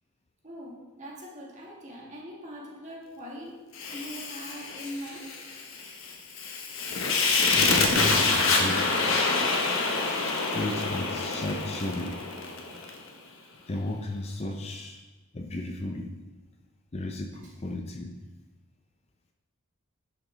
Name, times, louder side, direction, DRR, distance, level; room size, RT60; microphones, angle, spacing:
voice 1, 0.4-3.6 3.9-5.4, equal, 30° right, -3 dB, 1.8 m, -42 dB
Fire, 3.7-13.0, left 3 dB, 60° left, 1.2 m, -27 dB
voice 2, 7.5-8.9 10.5-12.2 13.5-15.0 15.3-16.1 16.9-18.2, left 1 dB, 30° left, 3 dB, 0.5 m, -34 dB
10.5 x 6.8 x 3.3 m, 1.2 s
head